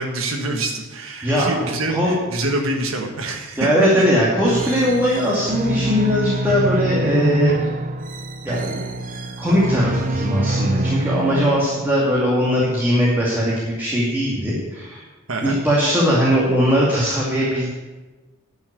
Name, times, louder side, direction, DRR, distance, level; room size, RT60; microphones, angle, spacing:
voice 1, 0.0-3.7 15.3-15.6, right 2 dB, 80° right, 1 dB, 1.4 m, -26 dB
voice 2, 3.6-7.7 8.4-8.8 9.4-15.0 15.4-17.7, equal, 10° right, -6 dB, 2.4 m, -19 dB
sound 1, 4.5-12.1, right 2 dB, 40° right, 0.8 m, -26 dB
11.5 x 5.8 x 8.9 m, 1.2 s
head